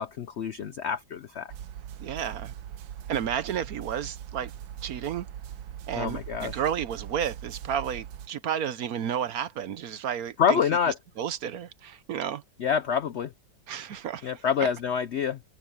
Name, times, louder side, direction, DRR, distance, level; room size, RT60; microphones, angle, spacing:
voice 1, 0.0-1.5 5.9-6.6 10.4-11.0 12.6-13.3 14.2-15.4, left 7 dB, 80° left, 0.6 m, -27 dB
sound 1, 1.5-8.3, right 10 dB, 90° right, 1.5 m, -41 dB
voice 2, 2.0-2.5 3.1-4.5 4.8-5.3 5.9-10.6 11.2-12.4 13.7-14.3, right 9 dB, 60° right, 1.1 m, -32 dB
open air
omnidirectional pair, 1.9 m